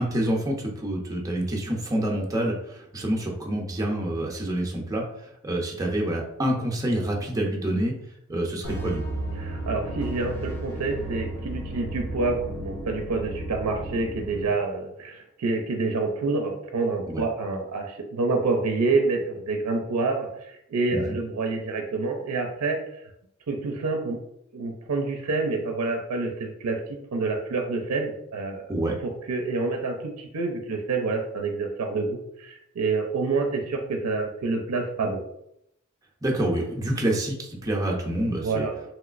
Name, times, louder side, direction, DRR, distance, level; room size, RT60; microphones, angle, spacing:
voice 1, 0.0-7.9 8.3-9.0 17.1-17.2 20.9-21.0 28.7-29.0 36.2-38.7, right 1 dB, 15° right, -1 dB, 0.5 m, -27 dB
sound 1, 8.6-14.5, right 1 dB, 80° left, 0.6 m, -34 dB
voice 2, 9.4-22.8 23.5-24.2 24.5-28.7 29.0-35.2 38.4-38.8, right 3 dB, 85° right, 3 dB, 0.5 m, -27 dB
3.0 x 2.9 x 2.4 m, 0.78 s
head